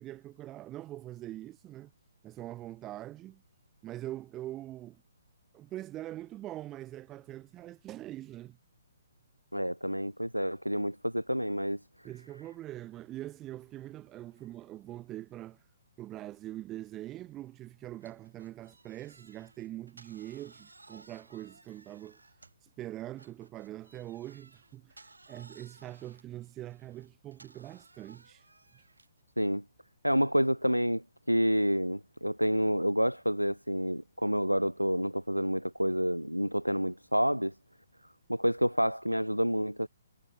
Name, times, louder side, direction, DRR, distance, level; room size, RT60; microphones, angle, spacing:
voice 1, 0.0-1.9 2.2-3.4 3.8-5.0 5.5-8.6 12.0-15.7 16.0-22.2 22.6-28.5, right 14 dB, 20° right, 3.2 m, -43 dB
voice 2, 9.5-11.8 29.4-29.6 30.0-37.5 38.3-39.9, equal, 90° right, 0.5 m, -28 dB
sound 1, 18.0-22.7 23.2-29.2, right 3 dB, 75° right, 5.6 m, -58 dB
figure-of-eight pair, 130°, 0 cm